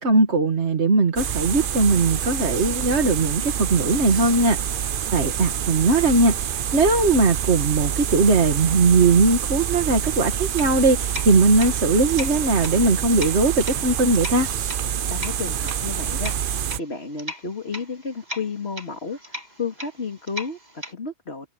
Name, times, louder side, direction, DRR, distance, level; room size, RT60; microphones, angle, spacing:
voice 1, 0.0-14.5, right 3 dB, 75° right, 2.1 m, -19 dB
sound 1, 1.2-16.8, right 9 dB, 55° right, 0.8 m, -27 dB
sound 2, 10.4-20.9, left 1 dB, 40° right, 6.8 m, -39 dB
voice 2, 15.1-21.5, left 4 dB, 65° left, 2.9 m, -32 dB
omnidirectional pair, 1.1 m